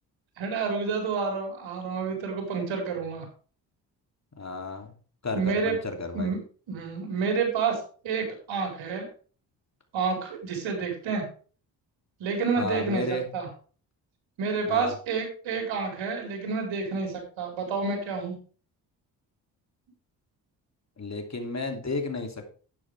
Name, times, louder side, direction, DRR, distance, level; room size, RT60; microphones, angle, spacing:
voice 1, 0.4-3.2 5.3-5.8 6.1-6.4 6.7-7.8 8.0-9.0 9.9-11.2 12.2-13.5 14.4-18.3, right 5 dB, 65° right, 1 dB, 4.8 m, -29 dB
voice 2, 4.4-4.9 5.2-6.3 12.6-13.3 14.7-14.9 21.0-22.5, left 2 dB, 35° left, 4 dB, 2.9 m, -32 dB
12.0 x 9.9 x 3.5 m, 0.39 s
hypercardioid pair, 45°, 49 cm